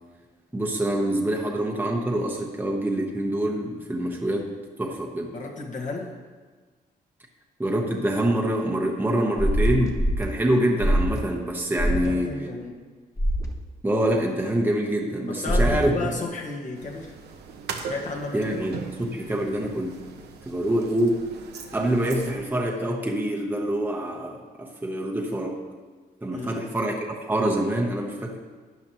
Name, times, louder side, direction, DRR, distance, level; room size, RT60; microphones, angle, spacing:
voice 1, 0.5-5.3 7.6-12.4 13.8-15.9 18.3-20.0 20.4-21.3 21.7-25.6 26.2-28.4, right 1 dB, 10° right, -1 dB, 1.0 m, -26 dB
voice 2, 5.3-6.2 11.8-12.8 15.3-17.2 17.9-18.6 26.3-26.7, left 3 dB, 50° left, 0 dB, 1.7 m, -33 dB
sound 1, 9.4-10.2 10.8-11.2 11.8-12.1 13.2-13.5 15.5-15.9, equal, 20° left, 1.2 m, -23 dB
sound 2, 16.7-22.3, right 6 dB, 85° right, 1.1 m, -40 dB
11.5 x 9.9 x 3.1 m, 1.4 s
cardioid pair, 110°, 17 cm